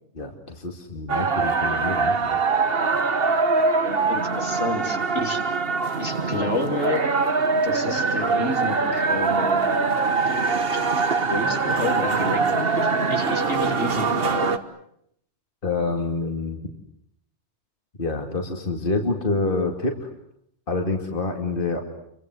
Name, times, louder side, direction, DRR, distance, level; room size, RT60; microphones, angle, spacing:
voice 1, 0.1-2.4 15.6-16.6 18.0-20.1 20.7-21.8, left 3 dB, 50° left, 3 dB, 2.7 m, -27 dB
sound 1, 1.1-14.6, right 4 dB, 55° right, 1.7 m, -23 dB
voice 2, 3.6-5.4 6.0-7.0 7.6-9.7 10.7-10.8 11.3-14.5, left 2 dB, 75° left, 3 dB, 3.8 m, -30 dB
29.5 x 24.5 x 7.9 m, 0.74 s
omnidirectional pair, 1.2 m